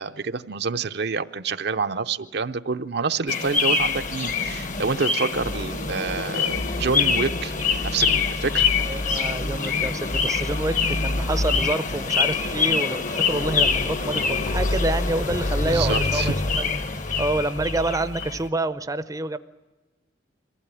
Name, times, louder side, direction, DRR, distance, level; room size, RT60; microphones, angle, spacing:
voice 1, 0.0-7.5 7.8-8.7 15.7-16.3, right 4 dB, 60° right, 9 dB, 0.7 m, -27 dB
sound 1, 3.3-18.5, left 4 dB, 40° left, 1.1 m, -25 dB
voice 2, 8.8-16.7 17.2-19.4, right 2 dB, 20° right, 13 dB, 0.6 m, -28 dB
23.0 x 15.5 x 9.8 m, 1.2 s
head